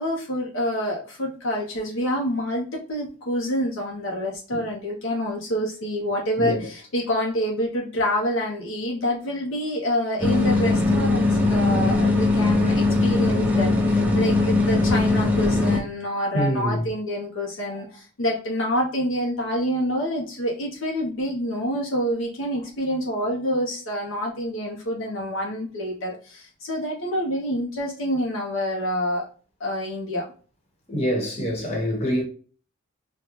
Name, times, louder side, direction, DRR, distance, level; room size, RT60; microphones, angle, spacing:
voice 1, 0.0-29.3 29.6-30.3, equal, 65° left, 0.7 m, -27 dB
sound 1, 10.2-15.8, left 2 dB, 5° right, 0.5 m, -20 dB
voice 2, 16.3-16.8 17.6-17.8 20.0-20.1 30.9-32.2, equal, 30° left, 1.1 m, -26 dB
3.7 x 2.2 x 2.9 m
head